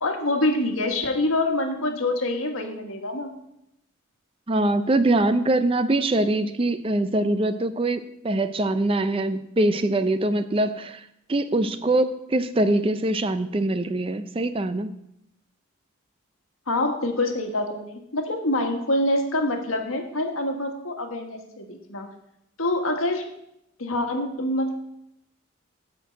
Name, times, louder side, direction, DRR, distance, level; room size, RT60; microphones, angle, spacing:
voice 1, 0.0-3.3 16.7-22.1 22.6-23.2 23.8-24.7, left 1 dB, 80° left, 4 dB, 1.6 m, -26 dB
voice 2, 4.5-15.0, right 2 dB, 25° right, 11 dB, 0.4 m, -23 dB
10.0 x 4.6 x 7.7 m, 0.79 s
head